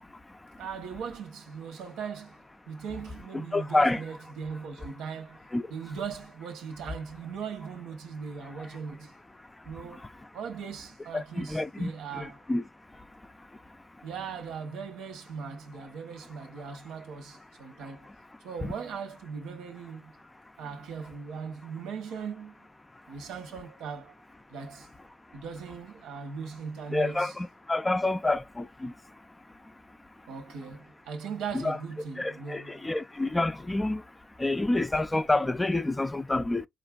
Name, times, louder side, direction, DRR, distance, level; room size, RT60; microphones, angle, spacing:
voice 1, 0.0-0.7 3.3-4.0 5.5-5.7 8.4-8.8 9.4-10.1 11.1-12.6 12.9-13.8 16.6-16.8 17.8-18.2 18.6-18.7 23.1-23.2 26.9-29.1 31.5-31.8 32.2-34.1 34.4-36.7, left 2 dB, 15° left, 0.3 m, -29 dB
voice 2, 0.6-2.4 2.7-9.1 9.6-10.1 10.3-12.4 14.0-18.1 18.4-20.1 20.6-22.7 23.1-24.1 24.5-24.9 25.3-27.3 30.3-32.9, right 6 dB, 85° right, 1.0 m, -39 dB
4.1 x 2.4 x 2.3 m
cardioid pair, 100°, 0 cm